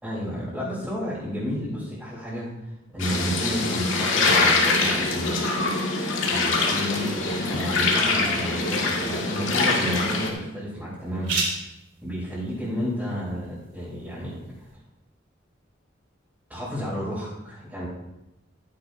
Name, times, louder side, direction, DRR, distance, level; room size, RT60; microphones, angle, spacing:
voice 1, 0.0-2.5 2.9-5.5 6.2-11.4 12.0-14.4 16.5-17.9, equal, 5° right, -11 dB, 3.9 m, -31 dB
sound 1, 3.0-10.3, left 3 dB, 85° left, 2.0 m, -24 dB
sound 2, 9.1-14.7, right 3 dB, 70° right, 3.0 m, -38 dB
14.5 x 10.5 x 2.8 m, 0.92 s
head